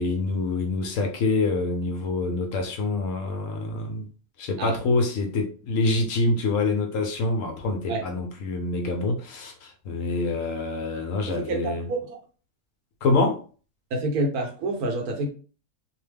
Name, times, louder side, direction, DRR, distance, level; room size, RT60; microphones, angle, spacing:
voice 1, 0.0-4.1 4.4-11.9 13.0-13.4, left 3 dB, 70° left, 4 dB, 0.9 m, -26 dB
voice 2, 11.3-12.2 13.9-15.3, right 2 dB, 80° right, 2 dB, 1.2 m, -28 dB
2.8 x 2.1 x 3.3 m, 0.38 s
omnidirectional pair, 1.6 m